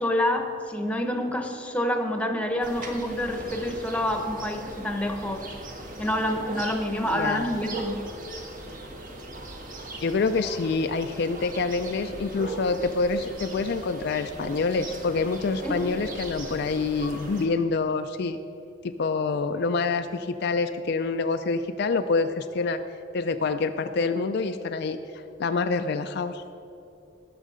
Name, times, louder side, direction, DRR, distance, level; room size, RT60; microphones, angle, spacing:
voice 1, 0.0-5.5 6.0-8.1 15.6-15.7, left 1 dB, 5° left, 4 dB, 0.9 m, -27 dB
sound 1, 2.6-17.5, right 1 dB, 45° right, 1.3 m, -39 dB
voice 2, 7.1-7.5 10.0-18.4 18.8-22.8 23.1-26.4, left 4 dB, 60° left, 8 dB, 0.4 m, -26 dB
18.5 x 6.5 x 5.0 m, 2.8 s
head